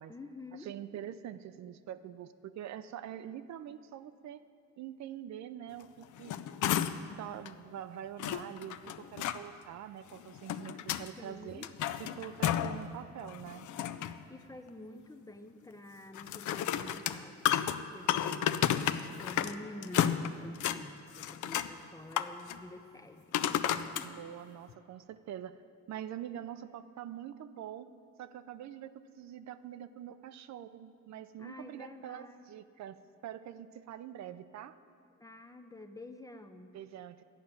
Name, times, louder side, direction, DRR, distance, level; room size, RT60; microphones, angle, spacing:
voice 1, 0.1-0.7 11.2-11.7 14.3-17.4 17.7-24.1 31.4-32.4 35.2-36.8, left 1 dB, 10° left, 7 dB, 0.5 m, -49 dB
voice 2, 0.6-4.4 4.8-6.3 7.2-11.7 12.0-13.7 24.0-25.6 25.9-27.9 28.2-33.0 33.2-34.8 36.7-37.2, right 10 dB, 65° right, 12 dB, 0.5 m, -45 dB
sound 1, 6.0-7.1 7.5-7.6 8.2-9.4 10.2-11.1 11.5-12.8 13.2-14.2 16.1-19.6 19.8-20.8 21.1-21.7 22.1-22.6 23.3-24.1 24.7-24.8, left 10 dB, 75° left, 0.5 m, -32 dB
13.0 x 5.8 x 8.8 m, 2.3 s
cardioid pair, 145°, 30 cm